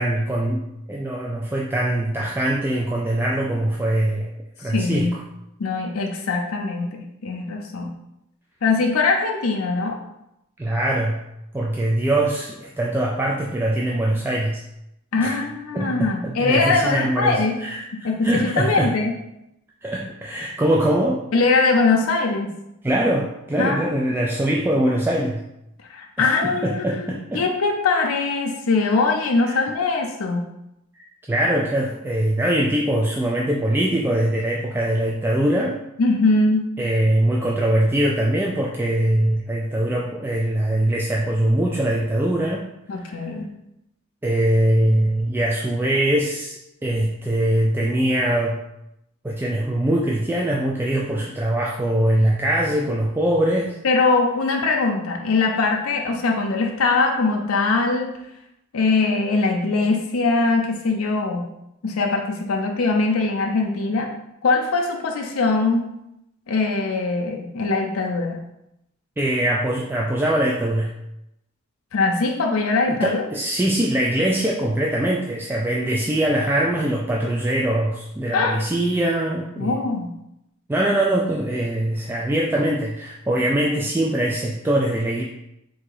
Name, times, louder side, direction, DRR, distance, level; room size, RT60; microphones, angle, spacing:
voice 1, 0.0-4.3 4.6-5.2 10.6-11.2 11.5-14.6 15.2-15.4 15.7-18.9 19.8-21.3 22.8-25.4 26.2-27.4 29.4-29.6 31.3-35.8 36.8-43.2 44.2-48.6 49.2-53.8 69.2-70.9 73.0-79.8 80.7-85.2, right 1 dB, 10° right, -2 dB, 0.3 m, -22 dB
voice 2, 4.6-5.2 5.6-7.9 8.6-10.0 15.1-17.6 17.9-19.1 21.3-22.5 23.6-23.9 25.9-27.1 27.3-30.4 36.0-36.7 42.9-43.5 53.8-58.2 58.7-61.5 61.8-64.1 64.4-65.9 66.5-68.4 71.9-73.2 78.3-78.6 79.6-80.1, left 3 dB, 75° left, 1 dB, 0.6 m, -21 dB
3.9 x 2.6 x 4.7 m, 0.84 s
head